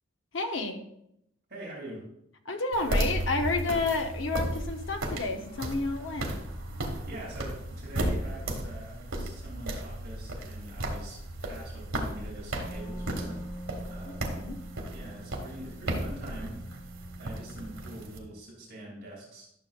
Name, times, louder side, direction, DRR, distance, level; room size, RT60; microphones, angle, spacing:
voice 1, 0.3-0.8 2.5-6.3 14.3-14.6, left 3 dB, 65° left, 5 dB, 0.9 m, -30 dB
voice 2, 1.5-2.0 7.1-13.4 13.9-14.3 14.6-16.6 17.2-19.5, right 1 dB, 45° right, -5 dB, 2.9 m, -44 dB
sound 1, 2.7-18.2, right 1 dB, 80° right, 1.6 m, -35 dB
Wind instrument woodwind instrument, 12.5-18.2, right 1 dB, 30° left, 1.8 m, -45 dB
12.0 x 6.8 x 2.4 m, 0.77 s
head